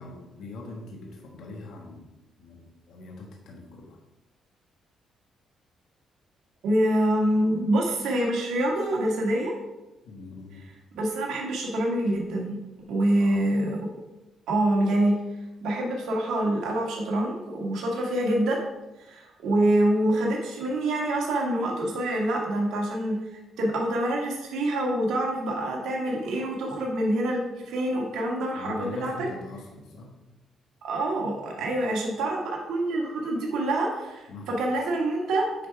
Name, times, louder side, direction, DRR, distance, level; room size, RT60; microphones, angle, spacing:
voice 1, 0.0-2.1 2.4-4.0 10.0-10.7 13.2-13.5 28.6-30.1 31.6-31.9 34.3-34.5, left 3 dB, 75° left, 0 dB, 1.4 m, -42 dB
voice 2, 6.6-9.5 11.0-12.6 12.9-13.8 14.5-15.2 15.6-18.6 19.1-23.2 23.6-29.3 30.8-35.7, right 1 dB, 80° right, -1 dB, 1.9 m, -26 dB
9.3 x 3.6 x 4.7 m, 1.0 s
cardioid pair, 90°, 0 cm